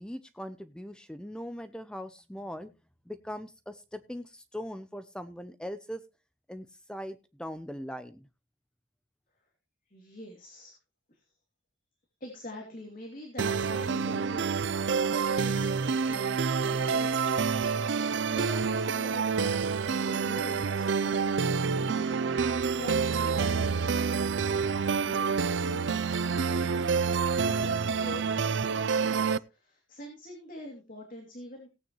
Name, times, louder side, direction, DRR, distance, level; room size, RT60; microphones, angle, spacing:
voice 1, 0.0-2.7 3.1-6.0 6.5-8.3, equal, 5° left, 11 dB, 0.6 m, -40 dB
voice 2, 9.9-10.8 11.1-11.3 12.2-27.1 27.4-31.7, left 1 dB, 45° left, 1 dB, 2.7 m, -46 dB
sound 1, 13.4-29.4, right 5 dB, 65° right, 0.5 m, -28 dB
17.5 x 8.9 x 3.1 m, 0.29 s
head